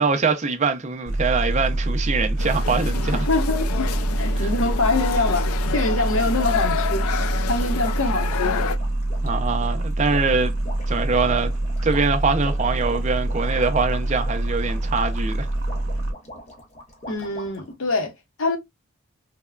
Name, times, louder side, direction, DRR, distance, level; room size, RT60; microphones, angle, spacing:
voice 1, 0.0-3.3 4.4-4.5 9.2-10.6 10.9-11.5 11.8-15.5, right 4 dB, 35° right, 0.5 m, -23 dB
sound 1, 1.1-16.1, right 1 dB, 60° right, 0.9 m, -25 dB
sound 2, 2.4-8.8, left 7 dB, 85° left, 0.4 m, -29 dB
voice 2, 3.3-3.9 4.2-8.7 17.1-18.1 18.4-18.6, left 3 dB, 65° left, 0.8 m, -25 dB
sound 3, 7.8-17.7, equal, 30° left, 0.8 m, -42 dB
3.4 x 2.1 x 2.2 m
head